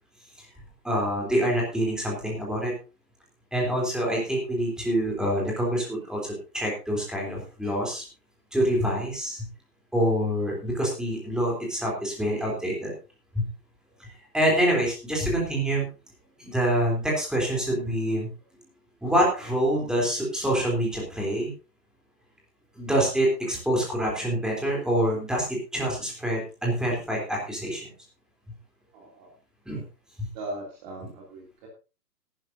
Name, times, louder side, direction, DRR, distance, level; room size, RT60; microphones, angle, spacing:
voice 1, 0.8-2.7 3.5-8.1 8.5-9.4 9.9-12.9 13.3-13.5 14.0-15.9 16.4-18.3 19.0-21.5 22.8-27.9 29.7-29.8, right 1 dB, ahead, -2 dB, 3.5 m, -26 dB
voice 2, 28.9-29.3 30.3-31.7, right 1 dB, 25° right, -1 dB, 2.8 m, -39 dB
17.0 x 12.0 x 2.7 m, 0.32 s
hypercardioid pair, 160°, 49 cm